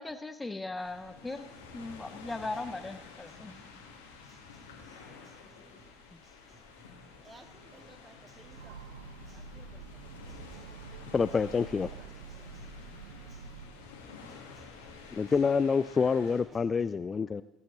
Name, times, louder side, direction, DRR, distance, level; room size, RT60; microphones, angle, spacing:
voice 1, 0.0-1.4 1.7-3.6 6.1-6.2, left 2 dB, 15° left, 0.7 m, -38 dB
sound 1, 0.7-16.4, left 5 dB, 90° left, 1.9 m, -51 dB
Acoustic guitar, 0.9-16.9, right 2 dB, 40° right, 4.7 m, -63 dB
voice 2, 4.9-5.3 7.2-8.8 9.3-9.8 10.9-11.1 12.0-12.5 14.9-15.3, right 2 dB, 25° right, 1.9 m, -58 dB
Train, 8.2-14.0, right 4 dB, 85° right, 0.7 m, -47 dB
voice 3, 11.1-12.0 15.1-17.4, left 5 dB, 35° left, 0.3 m, -27 dB
19.5 x 8.4 x 3.9 m
hypercardioid pair, 60°, 0 cm